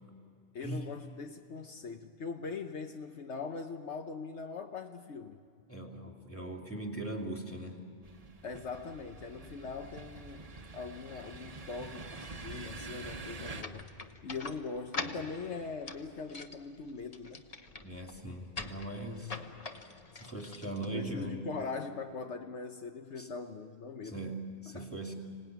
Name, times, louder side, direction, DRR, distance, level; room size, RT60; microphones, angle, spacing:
voice 1, 0.5-5.4 8.4-17.4 20.8-24.3 24.7-24.9, left 4 dB, 70° left, 5 dB, 1.2 m, -41 dB
voice 2, 5.7-7.9 17.8-19.4 20.1-21.5 23.2-23.3 24.0-25.2, right 1 dB, 10° left, 2 dB, 2.5 m, -40 dB
sound 1, 8.0-13.6, right 3 dB, 35° right, 1.1 m, -46 dB
sound 2, 13.6-21.4, left 3 dB, 35° left, 1.0 m, -44 dB
25.0 x 18.5 x 9.3 m, 2.5 s
omnidirectional pair, 1.2 m